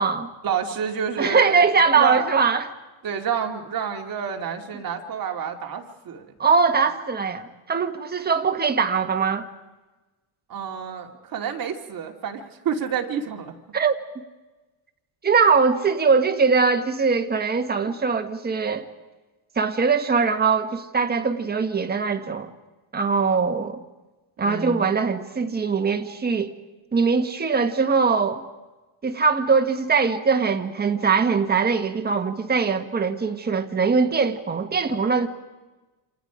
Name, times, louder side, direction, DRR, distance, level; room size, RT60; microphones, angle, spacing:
voice 1, 0.4-1.7 1.9-2.3 3.0-6.3 10.5-13.5 24.4-24.9, right 7 dB, 45° right, 2.5 m, -29 dB
voice 2, 1.2-2.7 6.4-9.5 13.7-13.9 15.2-18.9 19.5-22.5 22.9-23.8 24.4-26.5 26.9-28.4 29.0-35.3, right 5 dB, 20° right, 1.5 m, -21 dB
28.0 x 27.0 x 5.1 m
cardioid pair, 145°, 49 cm